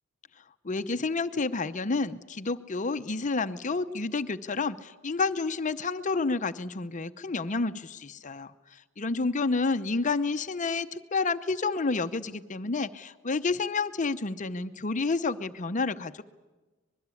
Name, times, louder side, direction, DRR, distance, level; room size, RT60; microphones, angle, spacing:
voice 1, 0.6-16.2, left 3 dB, 40° left, 11 dB, 0.7 m, -30 dB
24.5 x 21.5 x 8.4 m, 1.2 s
head